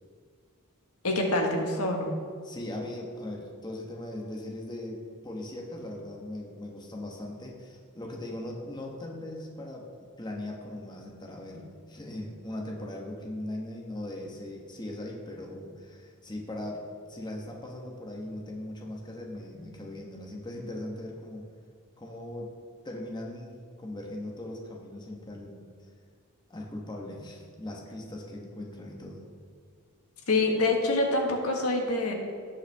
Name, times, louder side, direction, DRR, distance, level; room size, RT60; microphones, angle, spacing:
voice 1, 1.0-2.1 30.3-32.1, left 2 dB, 85° left, 1 dB, 1.6 m, -26 dB
voice 2, 2.4-9.9 10.2-21.5 22.0-22.5 22.8-25.6 26.5-29.2, left 1 dB, 20° left, 0 dB, 1.2 m, -39 dB
17.0 x 5.7 x 3.5 m, 2.1 s
head